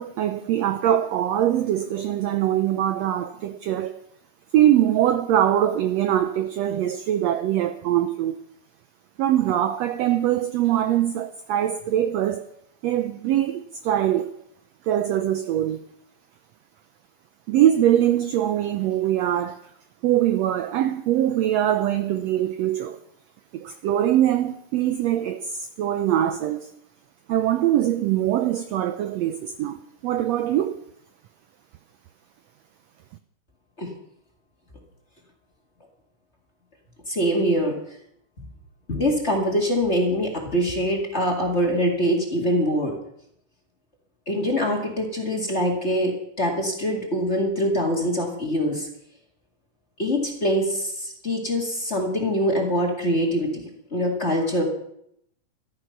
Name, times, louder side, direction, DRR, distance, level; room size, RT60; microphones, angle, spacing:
voice 1, 0.0-4.0 4.5-8.4 9.2-12.4 12.8-14.3 14.9-15.8 17.5-19.6 20.0-23.0 23.5-26.7 27.3-29.8 30.0-30.8, right 11 dB, 85° right, 1.5 m, -22 dB
voice 2, 37.1-37.8 38.4-38.5 38.9-42.9 44.3-48.9 50.0-53.6 53.9-54.6, equal, 25° left, 1.9 m, -24 dB
14.5 x 13.0 x 5.9 m
omnidirectional pair, 3.8 m